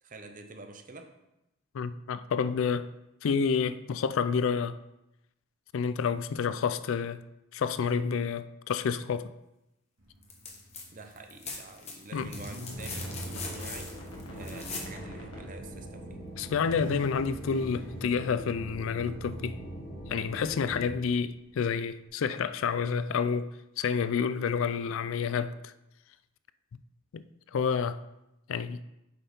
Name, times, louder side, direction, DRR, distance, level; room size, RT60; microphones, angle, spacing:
voice 1, 0.0-1.1 10.9-16.2, right 3 dB, 40° right, 0.7 m, -47 dB
voice 2, 1.7-2.9 3.2-4.8 5.7-7.2 7.5-9.2 12.1-12.3 16.4-19.6 20.1-23.5 23.8-25.7 27.1-27.2 27.5-28.0 28.5-28.8, left 6 dB, 75° left, 0.4 m, -29 dB
Car / Idling / Accelerating revving vroom, 10.0-22.1, right 1 dB, 75° right, 2.0 m, -47 dB
sound 1, 10.2-10.8 11.1-14.9 16.6-16.7, left 4 dB, 30° left, 1.1 m, -41 dB
sound 2, 12.7-20.9, right 1 dB, 90° left, 1.9 m, -42 dB
7.7 x 4.3 x 5.3 m
head